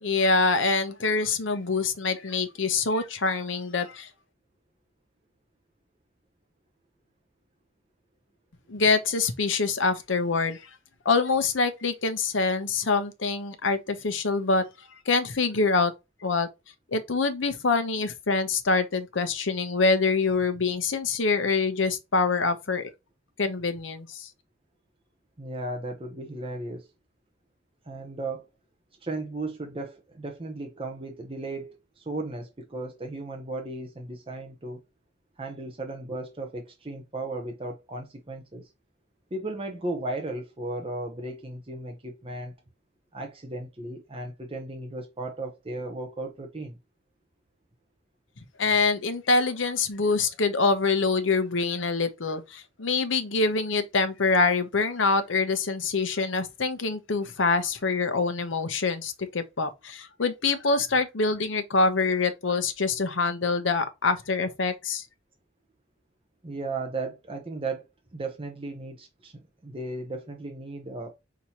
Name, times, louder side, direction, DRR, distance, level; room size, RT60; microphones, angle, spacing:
voice 1, 0.0-4.1 8.7-10.7 11.0-14.6 15.1-15.9 16.2-16.5 16.9-22.9 23.4-24.3 48.6-65.0, left 4 dB, 80° left, 0.8 m, -25 dB
voice 2, 25.4-26.9 27.9-28.5 29.0-34.8 35.4-38.7 39.3-42.5 43.1-46.8 66.4-67.8 68.1-71.1, right 2 dB, 30° right, 0.8 m, -35 dB
6.0 x 2.8 x 2.9 m
head